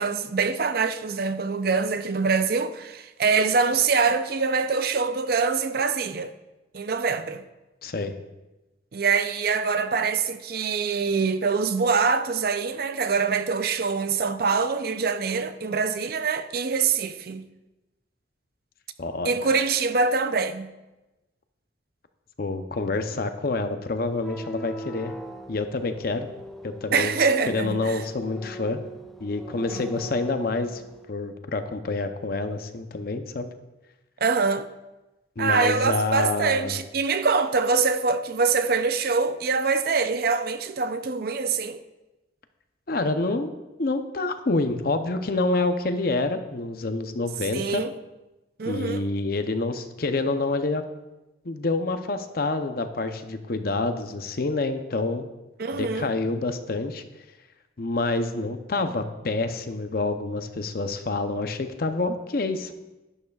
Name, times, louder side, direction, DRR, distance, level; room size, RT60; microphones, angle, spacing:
voice 1, 0.0-6.3 6.7-7.4 8.9-17.5 19.2-20.7 26.9-28.0 29.7-29.8 34.2-34.7 35.4-41.8 47.5-47.9 48.6-49.0 55.6-56.1, right 5 dB, 55° right, 0.5 m, -24 dB
voice 2, 7.8-8.1 19.0-19.3 22.4-25.2 25.5-26.3 26.6-27.2 27.5-28.8 29.2-30.8 31.1-33.5 35.4-36.8 42.9-43.5 43.8-47.8 48.6-50.8 51.4-55.3 55.7-57.0 57.8-62.7, left 3 dB, 50° left, 0.7 m, -27 dB
sound 1, 24.1-31.0, equal, ahead, 0.5 m, -41 dB
11.5 x 11.0 x 2.4 m
head